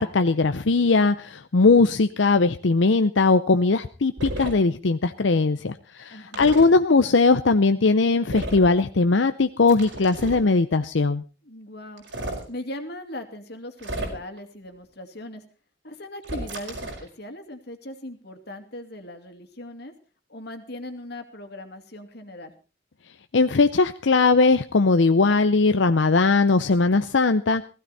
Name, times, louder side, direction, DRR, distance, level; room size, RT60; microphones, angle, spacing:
voice 1, 0.0-11.2 23.3-27.6, left 3 dB, 80° left, 9 dB, 0.7 m, -19 dB
sound 1, 4.2-4.5 6.3-6.7 8.3-8.7 9.7-10.5 12.0-12.4 13.8-14.4 16.2-17.1, right 1 dB, 85° right, 4.8 m, -33 dB
voice 2, 6.1-6.5 11.4-12.0 12.5-15.4 15.8-19.9 20.3-22.5, left 1 dB, 60° left, 7 dB, 2.4 m, -39 dB
16.0 x 16.0 x 4.1 m, 0.34 s
head